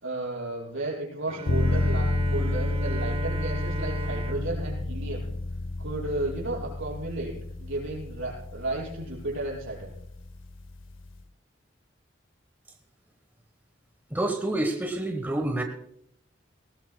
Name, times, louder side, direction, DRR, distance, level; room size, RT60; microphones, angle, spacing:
voice 1, 0.0-5.3 5.8-10.0, right 2 dB, 75° right, -4 dB, 5.4 m, -33 dB
Bowed string instrument, 1.3-6.2, right 3 dB, 30° right, 0.5 m, -37 dB
sound 1, 1.5-11.2, left 2 dB, 75° left, 0.6 m, -30 dB
voice 2, 14.1-15.6, right 1 dB, 10° right, 4 dB, 1.1 m, -28 dB
19.5 x 18.5 x 2.2 m, 0.72 s
head